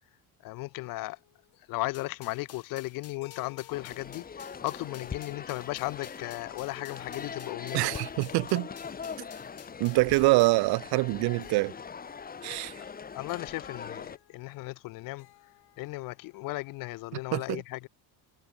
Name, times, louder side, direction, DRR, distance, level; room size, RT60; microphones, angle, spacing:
voice 1, 0.4-1.2 1.7-8.0 13.1-15.3 15.8-17.9, left 21 dB, 60° left, 0.5 m, -36 dB
sound 1, 0.6-17.1, left 20 dB, 85° left, 4.0 m, -59 dB
sound 2, 1.9-10.7, left 9 dB, 40° left, 6.2 m, -53 dB
sound 3, 3.7-14.2, left 6 dB, 25° left, 2.6 m, -42 dB
voice 2, 7.7-8.7 9.8-11.7 12.4-12.8 17.3-17.6, right 22 dB, 75° right, 0.7 m, -25 dB
cardioid pair, 160°, 38 cm